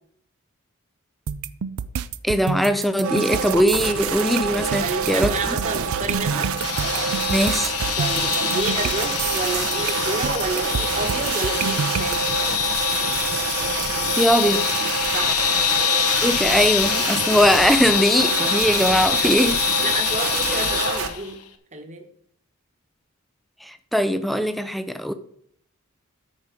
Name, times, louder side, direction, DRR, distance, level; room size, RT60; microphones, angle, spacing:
sound 1, 1.3-12.2, right 6 dB, 90° right, 0.5 m, -29 dB
voice 1, 2.2-5.4 7.3-7.8 14.2-14.7 16.2-19.6 23.6-25.1, equal, ahead, 10 dB, 0.5 m, -20 dB
sound 2, 3.0-21.1, right 6 dB, 70° right, 0.9 m, -27 dB
voice 2, 4.8-6.6 8.0-12.2 15.1-15.4 19.2-19.4 19.8-21.4 21.7-22.1, right 2 dB, 30° right, 4 dB, 1.3 m, -30 dB
sound 3, 6.6-21.3, left 9 dB, 90° left, 1.1 m, -25 dB
13.0 x 5.0 x 5.2 m, 0.65 s
head